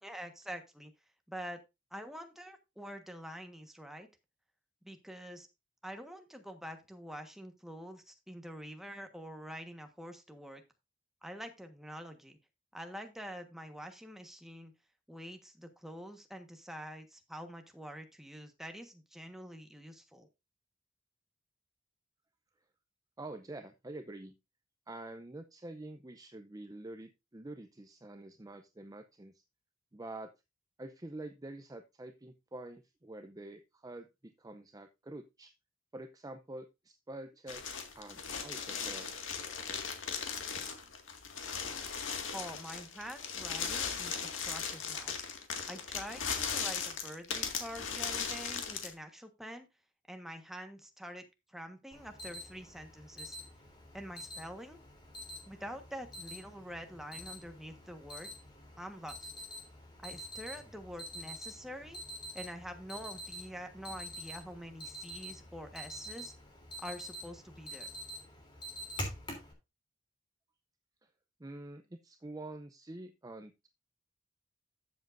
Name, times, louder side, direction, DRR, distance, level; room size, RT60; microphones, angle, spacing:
voice 1, 0.0-0.9 1.3-1.6 1.9-4.1 4.8-5.5 5.8-10.6 11.2-12.4 12.7-14.7 15.1-20.3 42.3-45.1 45.7-49.7 50.1-53.4 53.9-54.8 55.5-58.3 58.8-59.3 60.0-62.0 62.3-66.3 66.8-67.9, equal, ahead, 5 dB, 1.3 m, -46 dB
voice 2, 23.2-24.4 24.9-29.4 29.9-30.3 30.8-35.5 35.9-37.6 37.9-39.1 71.0-71.1 71.4-73.7, right 2 dB, 20° right, 8 dB, 0.6 m, -47 dB
sound 1, 37.5-48.9, left 6 dB, 85° left, 2.0 m, -38 dB
Alarm, 51.9-69.5, equal, 25° left, 3.2 m, -46 dB
13.0 x 7.4 x 2.6 m, 0.24 s
head